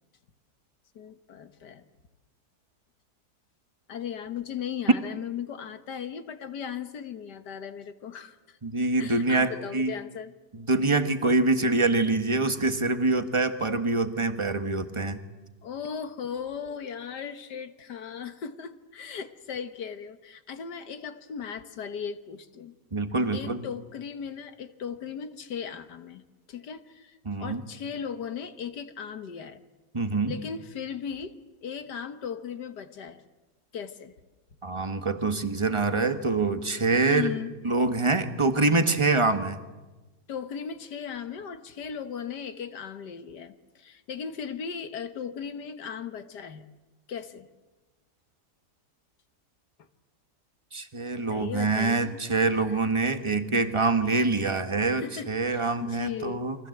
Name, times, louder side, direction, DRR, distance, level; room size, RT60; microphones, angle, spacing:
voice 1, 1.0-1.9 3.9-8.6 9.0-10.3 15.6-22.8 23.3-26.2 26.5-29.6 30.3-33.3 33.7-34.1 37.1-37.6 40.3-46.7 47.1-47.5 51.2-52.2 52.5-52.8 54.9-56.5, left 7 dB, 80° left, 10 dB, 1.9 m, -37 dB
voice 2, 8.6-9.9 10.5-15.2 22.9-23.6 27.2-27.6 29.9-30.3 34.6-37.3 37.6-39.6 50.7-56.6, right 3 dB, 20° right, 8 dB, 1.4 m, -25 dB
29.0 x 23.5 x 8.0 m, 1.2 s
omnidirectional pair, 1.8 m